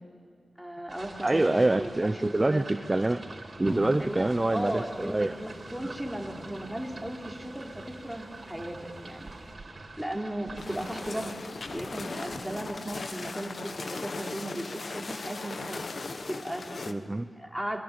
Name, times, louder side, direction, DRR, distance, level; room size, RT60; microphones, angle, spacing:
voice 1, 0.6-2.6 4.0-8.8 9.0-9.4 10.0-11.4 11.7-15.9 16.3-16.8 17.4-17.8, right 1 dB, 5° right, 0 dB, 3.7 m, -36 dB
sound 1, 0.9-11.3, right 2 dB, 55° right, 4.3 m, -46 dB
voice 2, 1.2-3.2 3.6-5.4 5.8-5.9 16.9-17.3, right 2 dB, 25° right, 9 dB, 0.8 m, -26 dB
sound 2, 3.7-9.5, equal, 20° left, 5.2 m, -45 dB
ski fiskeben pulk, 10.6-16.9, left 3 dB, 60° left, 1.5 m, -38 dB
28.5 x 23.0 x 9.0 m, 2.1 s
wide cardioid pair, 80°, 0 cm